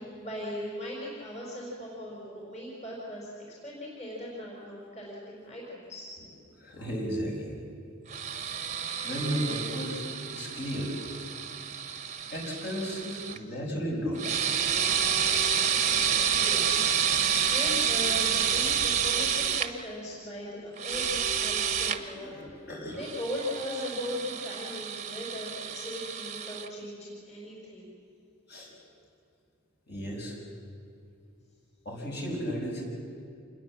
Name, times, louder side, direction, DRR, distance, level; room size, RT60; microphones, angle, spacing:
voice 1, 0.0-6.1 13.3-13.4 16.3-22.3 22.9-27.9, left 1 dB, 30° left, -4 dB, 4.9 m, -38 dB
voice 2, 6.5-7.6 9.0-10.0 10.3-10.9 12.3-14.6 22.2-23.0 28.5-28.7 29.9-30.4 31.8-32.8, equal, 50° left, -1 dB, 6.1 m, -34 dB
sound 1, 8.1-13.4 14.2-19.7 20.8-22.0 23.0-26.7, right 8 dB, 30° right, 1.1 m, -29 dB
27.5 x 21.0 x 7.5 m, 2.5 s
head